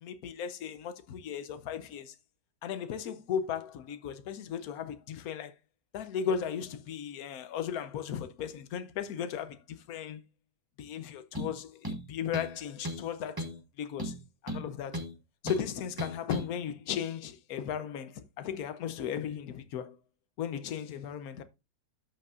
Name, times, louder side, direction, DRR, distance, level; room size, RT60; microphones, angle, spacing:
voice 1, 0.0-2.1 2.6-5.5 5.9-10.2 10.8-14.2 14.4-15.0 15.4-20.0 20.4-21.4, left 8 dB, 60° left, 1.2 m, -36 dB
sound 1, 11.3-11.6 11.8-12.6 12.8-13.1 13.4-13.6 14.0-15.1 15.5-15.6 16.0-16.5, equal, 15° right, 0.8 m, -36 dB
12.5 x 5.5 x 2.5 m
omnidirectional pair, 1.9 m